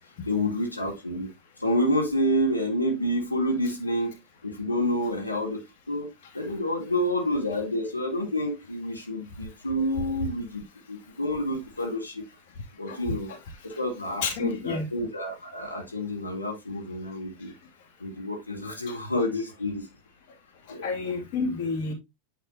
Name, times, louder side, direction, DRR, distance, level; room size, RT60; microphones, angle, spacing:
voice 1, 0.2-1.3 1.6-4.1 4.4-10.6 10.9-12.2 12.8-13.3 13.6-17.5 18.0-19.9 20.7-20.9, equal, 80° left, 1.7 m, -28 dB
voice 2, 12.9-13.4 13.7-13.8 14.2-14.9 18.9-19.0 20.7-21.9, left 4 dB, 50° left, 2.0 m, -30 dB
9.0 x 5.4 x 2.6 m
figure-of-eight pair, 90°, 0 cm